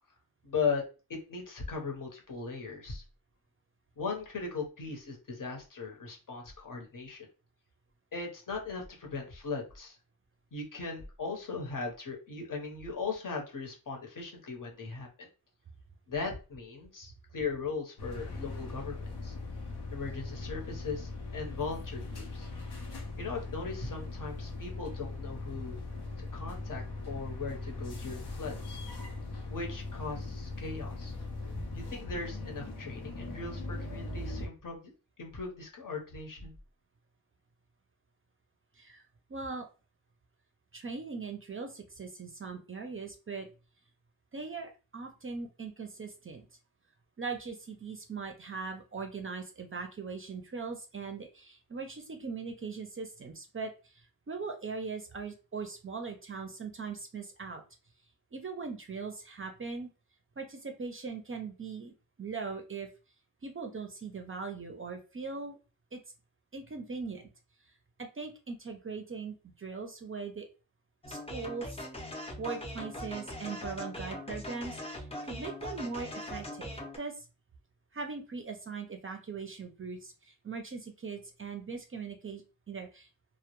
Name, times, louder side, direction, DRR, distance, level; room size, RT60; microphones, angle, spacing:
voice 1, 0.4-0.8 1.1-3.0 4.0-7.3 8.1-10.0 10.5-15.3 16.1-19.3 19.9-22.5 23.2-25.8 26.3-28.8 29.5-31.1 31.7-34.9 35.2-36.5, left 4 dB, 55° left, 2 dB, 0.8 m, -38 dB
sound 1, 18.0-34.5, left 2 dB, 85° left, 0.7 m, -40 dB
voice 2, 39.3-39.7 40.7-43.5 44.3-46.5 47.2-57.6 58.3-59.9 60.4-61.9 62.2-62.9 63.4-65.6 65.9-66.0 66.5-67.3 68.0-70.5 71.1-71.7 72.4-77.3 77.9-82.4 82.7-83.1, right 4 dB, 35° right, 4 dB, 0.4 m, -40 dB
sound 2, 71.0-77.0, left 1 dB, 15° left, 0.5 m, -41 dB
2.1 x 2.0 x 2.9 m, 0.33 s
wide cardioid pair, 90°, 38 cm